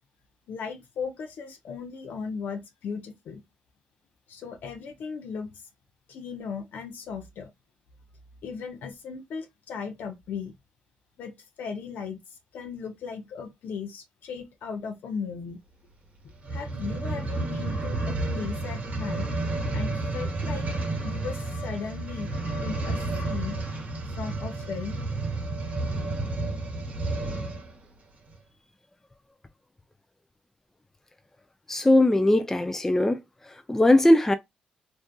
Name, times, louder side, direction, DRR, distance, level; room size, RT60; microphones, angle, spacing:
voice 1, 0.5-3.4 4.3-5.6 6.1-7.5 8.4-10.5 11.2-15.6 16.5-19.3 19.7-20.7 21.0-22.3 22.6-23.6 24.2-25.0, left 6 dB, 75° left, 0.5 m, -37 dB
sound 1, 16.4-27.7 28.3-28.4, right 2 dB, 55° right, 0.9 m, -31 dB
voice 2, 31.7-33.2 33.7-34.3, left 1 dB, 15° left, 0.3 m, -19 dB
2.6 x 2.3 x 2.2 m
supercardioid pair, 65°, 3 cm